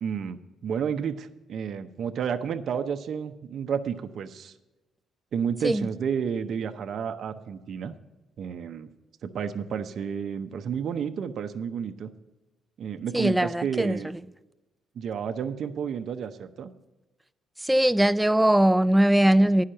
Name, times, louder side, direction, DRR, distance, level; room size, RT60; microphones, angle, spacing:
voice 1, 0.0-4.5 5.3-7.9 8.4-8.9 9.2-12.1 12.8-14.1 14.9-16.7, right 7 dB, 65° right, 0.7 m, -31 dB
voice 2, 13.1-14.2 17.6-19.6, right 1 dB, 5° right, 0.3 m, -21 dB
9.9 x 5.7 x 7.6 m
cardioid pair, 90°, 0 cm